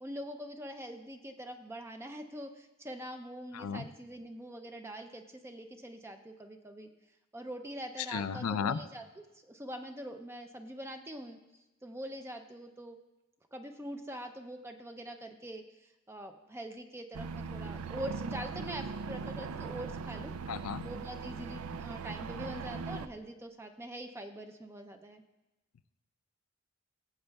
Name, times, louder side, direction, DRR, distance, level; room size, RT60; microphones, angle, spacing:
voice 1, 0.0-6.9 7.3-11.4 11.8-13.0 13.5-20.4 20.8-25.2, right 1 dB, 10° right, 5 dB, 0.4 m, -44 dB
voice 2, 8.1-8.8 20.5-20.8, left 6 dB, 90° left, 14 dB, 0.4 m, -33 dB
sound 1, 17.1-23.1, right 5 dB, 85° right, 0.4 m, -40 dB
19.5 x 7.8 x 2.3 m, 1.0 s
head